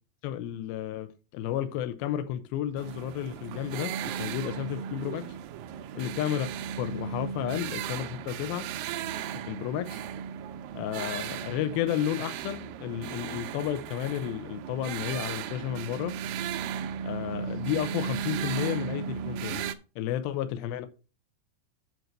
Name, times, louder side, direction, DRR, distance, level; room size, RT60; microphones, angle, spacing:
voice 1, 0.2-5.2 6.0-6.5 6.8-8.7 9.5-10.0 10.7-16.1 17.0-19.6 20.0-20.9, left 11 dB, 75° left, 2.5 m, -32 dB
sound 1, 2.8-19.8, right 8 dB, 85° right, 2.0 m, -36 dB
8.1 x 4.5 x 6.5 m
omnidirectional pair, 4.7 m